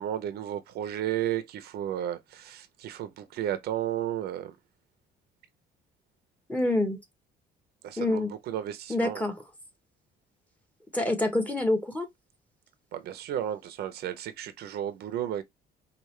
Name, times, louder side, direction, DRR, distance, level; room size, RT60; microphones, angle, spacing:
voice 1, 0.0-4.5 7.8-9.3 12.9-15.4, right 11 dB, 70° right, 0.7 m, -33 dB
voice 2, 6.5-7.0 8.0-8.3 8.9-9.4 10.9-12.1, left 1 dB, 10° left, 1.3 m, -26 dB
4.8 x 2.5 x 3.2 m
cardioid pair, 110°, 17 cm